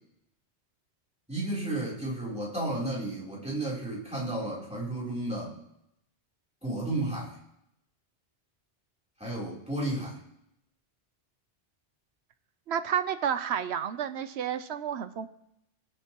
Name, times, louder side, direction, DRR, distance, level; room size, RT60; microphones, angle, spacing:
voice 1, 1.3-5.6 6.6-7.4 9.2-10.2, right 1 dB, 5° right, -6 dB, 3.4 m, -32 dB
voice 2, 12.7-15.3, right 8 dB, 75° right, 12 dB, 0.9 m, -30 dB
22.0 x 7.9 x 2.9 m, 0.80 s
omnidirectional pair, 1.1 m